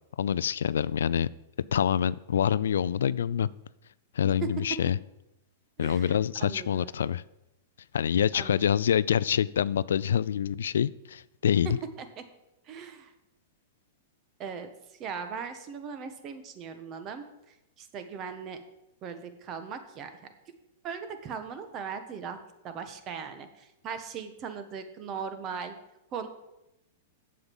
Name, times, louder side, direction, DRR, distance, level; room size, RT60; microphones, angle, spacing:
voice 1, 0.2-1.3 1.7-3.5 4.1-5.0 5.8-7.2 7.9-11.8, left 9 dB, 85° left, 19 dB, 0.3 m, -26 dB
voice 2, 5.8-7.1 8.3-8.6 12.0-12.2 12.7-13.1 14.4-14.7 15.0-17.2 17.8-18.6 19.0-20.1 20.8-22.4 22.6-25.8 26.1-26.3, right 6 dB, 35° right, 9 dB, 1.3 m, -39 dB
7.9 x 7.5 x 7.1 m, 0.90 s
hypercardioid pair, 130°, 0 cm